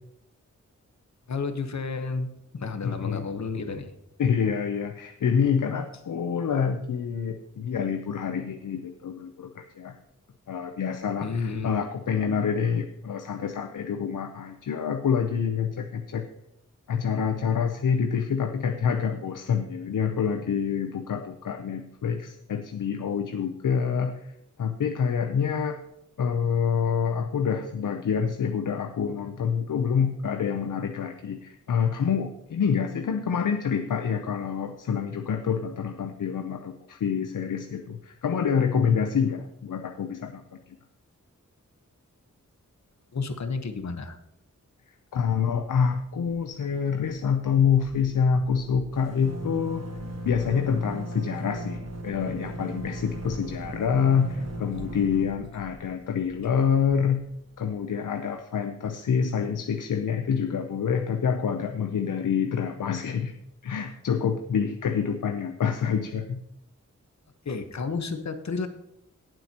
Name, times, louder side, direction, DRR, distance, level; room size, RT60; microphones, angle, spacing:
voice 1, 1.3-2.3 2.5-3.9 11.2-11.7 43.1-44.2 67.4-68.7, left 4 dB, 60° left, 8 dB, 1.1 m, -31 dB
voice 2, 2.8-3.3 4.2-10.0 10.5-16.2 16.9-24.3 24.6-25.8 26.2-40.6 45.1-49.8 50.3-57.2 57.6-63.3 63.6-66.4, left 7 dB, 90° left, 7 dB, 0.7 m, -27 dB
sound 1, 46.1-46.4 46.7-46.8 47.0-57.7, right 1 dB, 55° right, 1.4 m, -38 dB
18.0 x 7.6 x 2.9 m, 0.78 s
wide cardioid pair, 85°, 31 cm